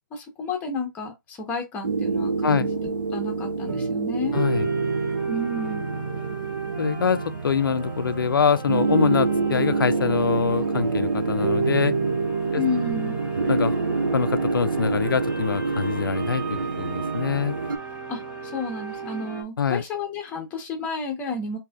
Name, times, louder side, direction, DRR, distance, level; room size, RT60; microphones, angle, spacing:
voice 1, 0.1-2.7 3.1-4.4 5.3-5.8 12.5-13.2 18.1-21.6, left 3 dB, 15° left, 0.9 m, -31 dB
sound 1, 1.8-17.8, right 4 dB, 70° right, 0.6 m, -26 dB
voice 2, 4.3-4.7 6.8-12.0 12.5-12.6 13.5-13.8 14.1-17.6 19.6-19.8, left 6 dB, 85° left, 0.4 m, -24 dB
sound 2, 4.3-19.4, right 3 dB, 15° right, 0.7 m, -38 dB
3.2 x 2.7 x 2.3 m
hypercardioid pair, 145°, 11 cm